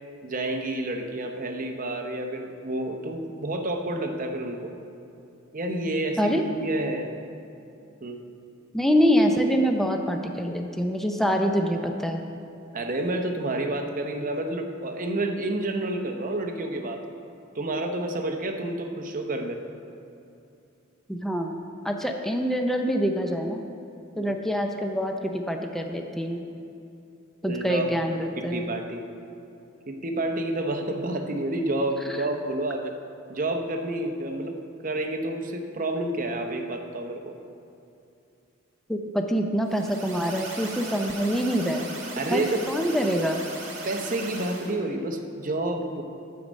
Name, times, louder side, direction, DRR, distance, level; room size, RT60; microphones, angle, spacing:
voice 1, 0.2-4.7 5.5-7.1 8.0-8.2 12.7-17.0 17.5-19.6 24.2-24.3 27.4-28.0 28.3-29.0 29.9-32.9 33.3-34.6 34.8-37.3 42.2-42.6 43.8-46.0, right 1 dB, 40° right, 4 dB, 0.8 m, -29 dB
voice 2, 8.7-12.2 21.1-21.6 21.8-23.6 24.2-26.4 27.4-28.7 38.9-41.9 42.3-43.4, equal, ahead, 3 dB, 0.5 m, -25 dB
sound 1, 39.6-44.7, right 3 dB, 65° right, 1.9 m, -38 dB
9.5 x 7.5 x 5.2 m, 2.7 s
head